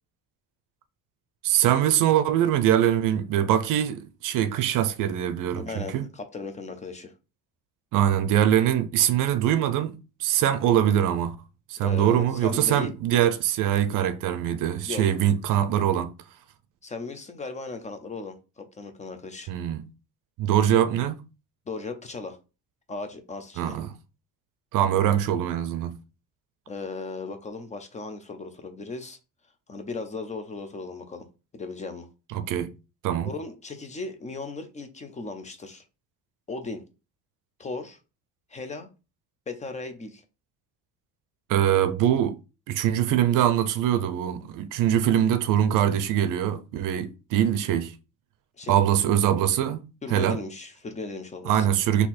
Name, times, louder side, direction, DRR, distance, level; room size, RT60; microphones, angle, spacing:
voice 1, 1.4-6.0 7.9-11.4 11.7-16.1 19.5-19.8 20.4-21.2 23.6-23.9 24.7-26.0 32.3-32.7 33.0-33.3 41.5-42.4 42.7-47.9 48.7-49.8 50.1-50.4 51.5-52.1, right 10 dB, 65° right, 0.6 m, -23 dB
voice 2, 5.6-7.1 11.8-12.9 14.9-15.1 16.8-19.5 21.7-22.4 22.9-23.8 26.7-29.2 29.7-31.3 31.5-32.1 33.2-35.8 36.5-36.8 37.6-38.0 38.5-38.9 39.5-40.2 48.6-48.8 50.0-51.6, left 3 dB, 20° left, 0.6 m, -36 dB
4.0 x 2.8 x 4.2 m
cardioid pair, 150°, 34 cm